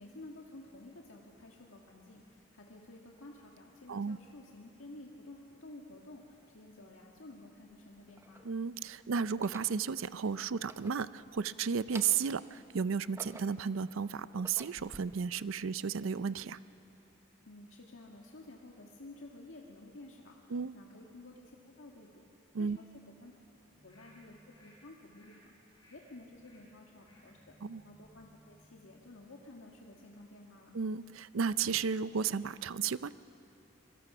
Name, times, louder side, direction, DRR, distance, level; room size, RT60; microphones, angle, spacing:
voice 1, 0.0-8.5 17.4-22.3 22.6-22.8 23.2-23.3 23.8-25.6 25.9-27.5 27.8-30.7, left 2 dB, 80° left, 0 dB, 1.8 m, -52 dB
sound 1, 6.8-6.9 7.7-8.5 9.3-9.8 10.5-11.5 11.8-12.4 12.9-13.7 14.2-15.0, right 2 dB, 15° right, 0.7 m, -50 dB
voice 2, 8.4-16.6 20.5-20.7 22.5-22.8 27.6-27.8 30.7-33.1, right 6 dB, 80° right, 16 dB, 0.5 m, -33 dB
sound 2, 23.7-30.2 30.5-30.6, equal, 20° left, 7.5 m, -64 dB
26.5 x 22.0 x 6.1 m, 2.9 s
head